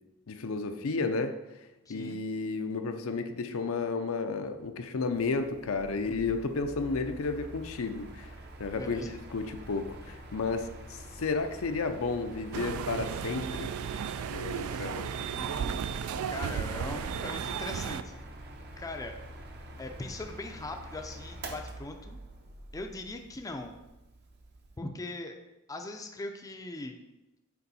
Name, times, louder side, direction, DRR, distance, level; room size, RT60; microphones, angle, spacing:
voice 1, 0.3-1.4 1.9-8.3 8.6-9.0 9.3-13.7 14.3-15.1, left 4 dB, 65° left, 7 dB, 0.5 m, -32 dB
voice 2, 1.9-2.2 8.7-9.1 14.6-15.0 15.3-15.9 16.3-18.2 18.8-19.2 19.8-22.2 22.7-23.7 24.8-25.4 25.7-27.0, left 2 dB, 15° left, 4 dB, 0.4 m, -40 dB
Mechanical fan, 5.1-24.8, right 1 dB, 50° right, 0.8 m, -46 dB
sound 1, 12.5-18.0, right 7 dB, 75° right, 0.3 m, -34 dB
6.8 x 4.5 x 4.1 m, 1.0 s
head